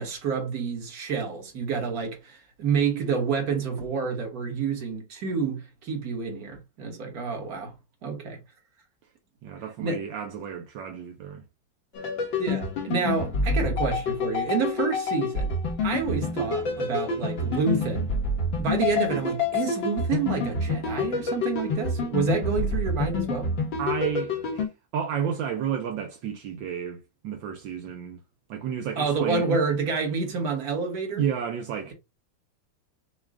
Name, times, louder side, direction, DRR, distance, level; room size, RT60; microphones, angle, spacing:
voice 1, 0.0-7.7 8.0-8.4 9.8-10.0 12.4-15.5 15.8-18.1 18.6-23.5 29.0-31.3, right 5 dB, 50° right, 1.7 m, -28 dB
voice 2, 9.4-11.4 23.8-28.2 28.5-29.6 31.1-31.9, right 8 dB, 75° right, 1.4 m, -31 dB
sound 1, 11.9-24.7, left 3 dB, 70° left, 2.1 m, -28 dB
6.2 x 2.4 x 3.6 m
omnidirectional pair, 2.1 m